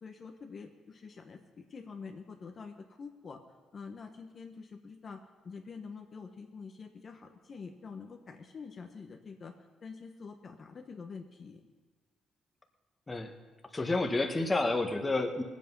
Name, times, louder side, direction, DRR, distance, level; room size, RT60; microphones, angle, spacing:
voice 1, 0.0-3.4 3.7-9.5 9.8-11.6, left 5 dB, 45° left, 3 dB, 1.3 m, -46 dB
voice 2, 13.7-15.4, left 2 dB, 20° left, 4 dB, 1.5 m, -29 dB
19.5 x 8.4 x 5.5 m, 1.3 s
cardioid pair, 90°, 0 cm